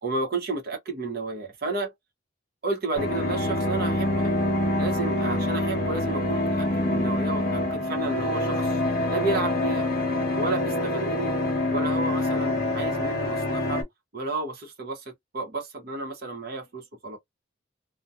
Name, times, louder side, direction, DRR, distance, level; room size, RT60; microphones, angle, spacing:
voice 1, 0.0-1.9 2.6-4.3 4.8-8.8 9.1-9.8 10.3-11.3 11.7-13.8 14.1-17.2, right 3 dB, 50° right, 0.8 m, -32 dB
sound 1, 3.0-13.8, left 1 dB, 50° left, 0.9 m, -26 dB
2.6 x 2.2 x 2.3 m
head